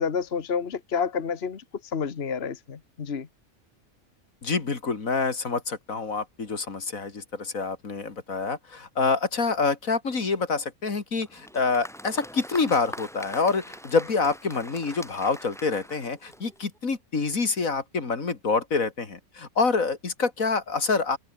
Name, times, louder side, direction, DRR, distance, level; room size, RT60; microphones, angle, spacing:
voice 1, 0.0-3.3, left 6 dB, 50° left, 1.5 m, -29 dB
voice 2, 4.4-21.2, left 4 dB, 80° left, 3.0 m, -27 dB
Applause, 11.2-16.8, equal, ahead, 2.4 m, -43 dB
omnidirectional pair, 1.4 m